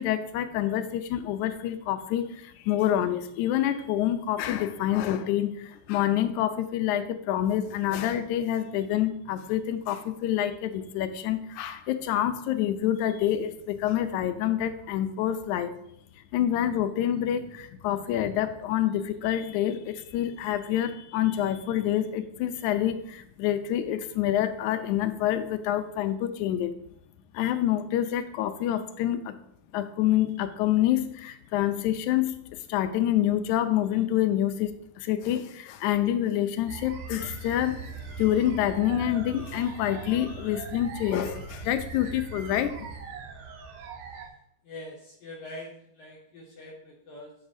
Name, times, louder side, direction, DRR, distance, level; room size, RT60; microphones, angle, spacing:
voice 1, 0.0-15.7 16.3-26.7 27.3-29.4 29.7-32.4 32.7-34.7 35.0-42.9, left 11 dB, 75° left, 9 dB, 1.9 m, -27 dB
sound 1, 36.7-44.3, right 5 dB, 80° right, 2.7 m, -41 dB
voice 2, 44.6-47.3, left 1 dB, 60° left, -2 dB, 1.8 m, -43 dB
10.0 x 7.1 x 2.7 m, 0.75 s
omnidirectional pair, 3.7 m